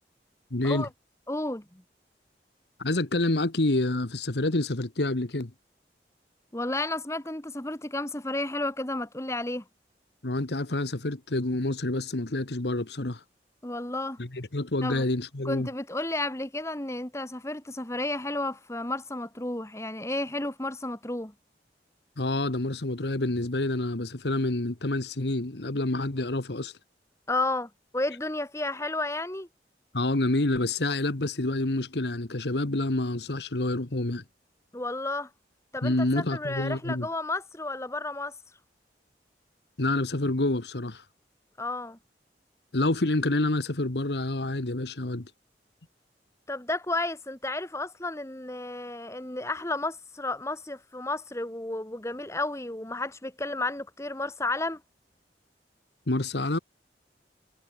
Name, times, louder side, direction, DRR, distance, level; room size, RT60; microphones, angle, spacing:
voice 1, 0.5-0.9 2.8-5.5 10.2-13.2 14.2-15.7 22.2-26.7 29.9-34.2 35.8-37.1 39.8-41.0 42.7-45.3 56.1-56.6, left 2 dB, 75° left, 1.5 m, -28 dB
voice 2, 1.3-1.8 6.5-9.6 13.6-14.2 14.8-15.0 15.4-21.3 27.3-29.5 34.7-35.3 35.7-38.3 41.6-42.0 46.5-54.8, left 2 dB, 15° left, 1.7 m, -32 dB
head